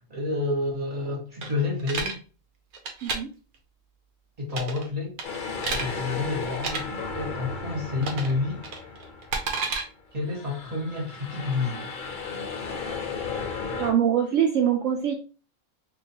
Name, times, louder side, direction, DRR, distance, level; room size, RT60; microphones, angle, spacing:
voice 1, 0.1-2.2 4.4-5.1 5.7-8.6 10.1-11.9, left 3 dB, 30° right, 1.1 m, -29 dB
sound 1, 1.4-2.2 2.7-3.2 4.5-4.9 5.2-5.9 6.5-6.8 8.0-8.3 8.6-9.8, right 4 dB, 90° right, 1.2 m, -30 dB
sound 2, 5.2-9.8 10.2-13.9, left 4 dB, 55° left, 0.5 m, -35 dB
voice 2, 13.7-15.1, right 9 dB, 70° right, 0.9 m, -23 dB
3.9 x 2.6 x 2.8 m
omnidirectional pair, 1.5 m